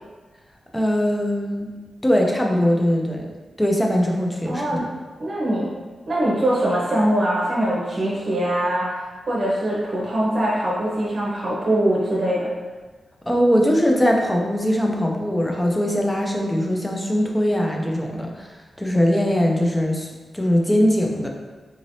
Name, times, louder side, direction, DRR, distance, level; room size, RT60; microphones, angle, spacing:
voice 1, 0.7-1.7 2.0-3.3 3.6-4.9 13.3-20.1 20.3-21.3, equal, 10° left, 1 dB, 0.4 m, -21 dB
voice 2, 4.4-4.9 5.2-5.7 6.1-12.5, right 1 dB, 40° right, -6 dB, 0.8 m, -22 dB
3.9 x 3.1 x 2.6 m, 1.3 s
wide cardioid pair, 175°, 0 cm